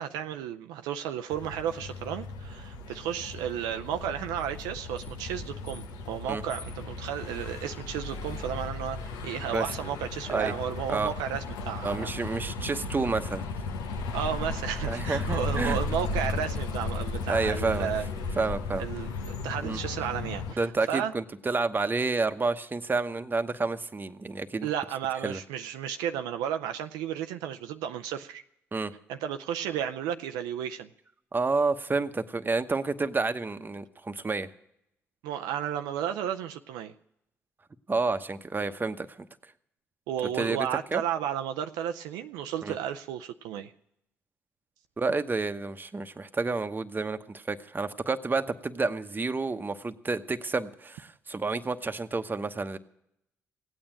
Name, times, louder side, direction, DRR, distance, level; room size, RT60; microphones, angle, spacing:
voice 1, 0.0-12.1 14.1-18.1 18.8-21.1 24.6-28.4 29.1-30.9 35.2-36.9 40.1-43.7, right 9 dB, 80° right, 7 dB, 0.5 m, -33 dB
sound 1, 1.3-20.5, left 3 dB, 80° left, 1.0 m, -35 dB
voice 2, 11.8-13.5 14.9-15.8 17.3-17.9 18.3-18.8 19.6-19.8 20.6-24.7 25.2-25.4 28.7-28.9 31.3-34.5 37.9-39.3 40.3-41.0 42.6-42.7 45.0-52.8, right 3 dB, 30° right, 10 dB, 1.0 m, -29 dB
16.5 x 8.9 x 8.9 m, 0.79 s
hypercardioid pair, 45°, 7 cm